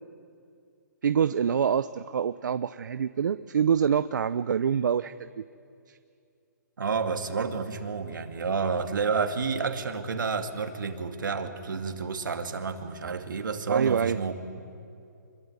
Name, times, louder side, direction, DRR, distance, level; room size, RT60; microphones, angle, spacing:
voice 1, 1.0-5.4 5.9-6.0 13.7-14.2, right 7 dB, 70° right, 13 dB, 0.6 m, -26 dB
voice 2, 6.8-14.4, right 5 dB, 85° right, 6 dB, 2.6 m, -30 dB
26.0 x 22.5 x 9.6 m, 2.5 s
hypercardioid pair, 165°, 10 cm